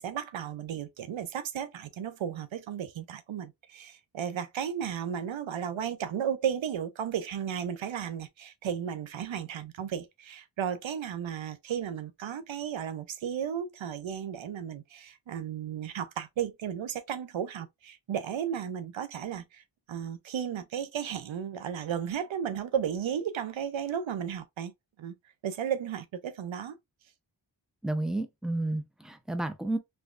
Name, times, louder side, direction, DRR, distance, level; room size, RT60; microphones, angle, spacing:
voice 1, 0.0-24.7 25.0-25.1 25.4-26.8, right 8 dB, 85° right, 0.6 m, -34 dB
voice 2, 27.8-29.8, right 2 dB, ahead, 0.8 m, -31 dB
3.3 x 3.2 x 2.4 m
cardioid pair, 45°, 46 cm